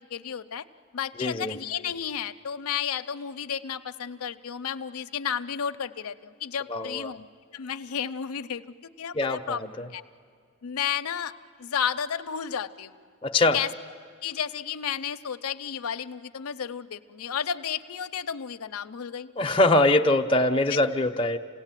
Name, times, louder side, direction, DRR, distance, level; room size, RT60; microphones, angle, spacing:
voice 1, 0.1-0.6 0.9-7.3 7.5-8.6 9.0-9.6 9.9-10.0 10.6-11.3 11.6-12.9 13.5-13.7 14.2-19.3, left 8 dB, 85° left, 9 dB, 0.6 m, -32 dB
voice 2, 1.2-1.5 6.7-7.1 9.1-9.9 13.2-13.6 19.4-21.4, left 2 dB, 25° left, 3 dB, 0.7 m, -23 dB
27.5 x 17.5 x 9.0 m, 2.1 s
head